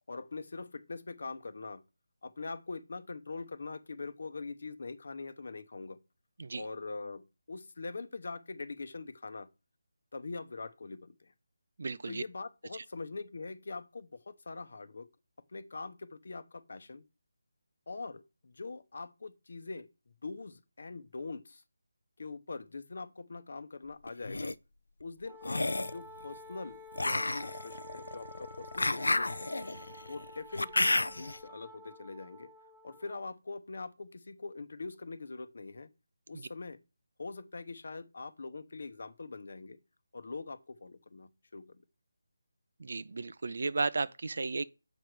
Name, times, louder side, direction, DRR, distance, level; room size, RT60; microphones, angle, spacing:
voice 1, 0.1-1.8 2.2-6.0 6.5-9.5 10.1-11.3 12.0-15.1 15.5-17.0 17.9-19.9 20.2-21.6 22.2-24.5 25.0-29.5 30.1-32.5 32.8-35.9 36.3-36.8 37.2-39.8 40.1-41.8, left 3 dB, 60° left, 0.9 m, -43 dB
voice 2, 11.8-12.2 12.7-12.8 42.8-44.6, right 3 dB, 60° right, 0.5 m, -34 dB
sound 1, 24.1-24.5 25.4-26.0 26.9-31.4, left 2 dB, 85° left, 0.4 m, -31 dB
Wind instrument woodwind instrument, 25.2-33.3, equal, 5° right, 0.6 m, -51 dB
7.2 x 5.0 x 4.6 m
figure-of-eight pair, 165°, 0 cm